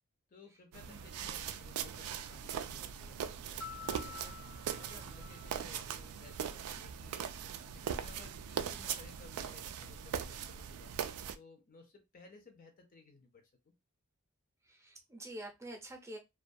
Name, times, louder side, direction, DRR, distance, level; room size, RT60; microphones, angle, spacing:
voice 1, 0.3-4.4 4.8-7.3 7.7-13.7, left 4 dB, 40° left, 4 dB, 0.4 m, -58 dB
sound 1, 0.7-11.4, right 8 dB, 85° right, 0.3 m, -40 dB
Piano, 3.6-6.4, left 8 dB, 85° left, 0.6 m, -49 dB
voice 2, 14.6-16.2, right 1 dB, 15° right, 2 dB, 0.5 m, -47 dB
2.3 x 2.2 x 2.5 m, 0.23 s
head